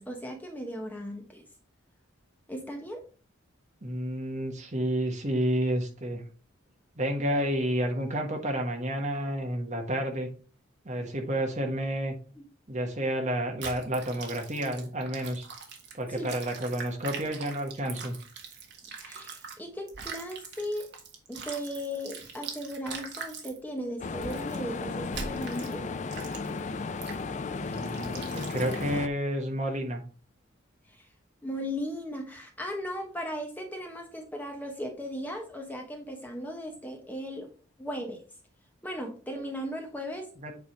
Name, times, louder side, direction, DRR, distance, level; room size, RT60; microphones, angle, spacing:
voice 1, 0.0-1.4 2.5-3.0 12.4-12.5 16.1-16.3 19.0-20.9 21.3-25.8 31.4-37.5 37.8-38.2 38.8-40.3, equal, 10° left, 2 dB, 1.0 m, -37 dB
voice 2, 3.8-6.2 7.0-10.3 10.8-12.1 12.7-15.5 16.0-18.1 27.7-30.0 40.4-40.5, right 1 dB, 35° right, 2 dB, 1.4 m, -30 dB
sound 1, 13.6-19.6 19.9-23.6 24.2-24.6 25.1-25.7 26.1-26.6 27.0-27.2 27.7-29.0, right 5 dB, 55° right, 1.6 m, -42 dB
sound 2, 24.0-29.1, left 4 dB, 35° left, 0.4 m, -34 dB
8.2 x 3.5 x 4.5 m, 0.38 s
head